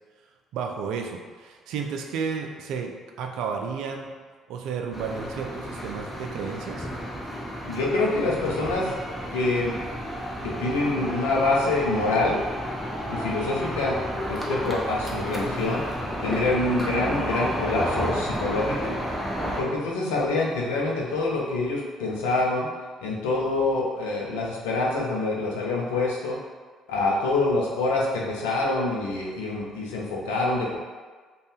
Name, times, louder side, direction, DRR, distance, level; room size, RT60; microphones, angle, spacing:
voice 1, 0.5-4.2 4.5-6.9, right 6 dB, 70° right, 3 dB, 0.3 m, -32 dB
sound 1, 4.9-19.6, equal, 10° left, 0.7 m, -31 dB
voice 2, 7.6-8.8 9.3-9.7 10.4-12.4 13.1-14.0 14.3-15.8 16.2-18.9 19.6-22.7 23.0-26.4 26.9-30.8, left 2 dB, 80° left, -3 dB, 0.5 m, -26 dB
2.6 x 2.3 x 3.3 m, 1.5 s
hypercardioid pair, 55°, 0 cm